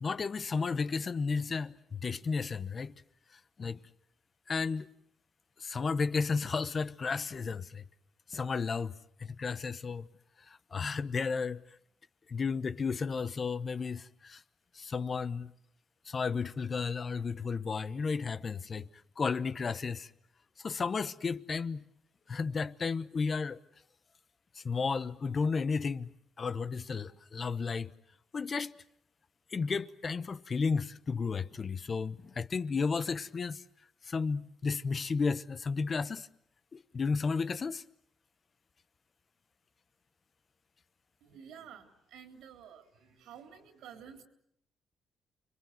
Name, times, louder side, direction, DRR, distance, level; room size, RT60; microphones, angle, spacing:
voice 1, 0.0-2.9 3.3-3.8 4.5-4.9 5.6-7.8 8.3-10.1 10.5-11.6 12.3-14.4 14.7-15.5 16.1-18.9 19.2-20.1 20.6-21.8 22.3-23.6 24.5-26.1 26.4-27.9 28.3-28.8 29.5-33.6 34.0-36.3 36.7-37.8, left 5 dB, 40° left, 1.0 m, -33 dB
voice 2, 41.2-44.2, right 8 dB, 85° right, 3.7 m, -51 dB
30.0 x 22.5 x 7.9 m
cardioid pair, 90°, 0 cm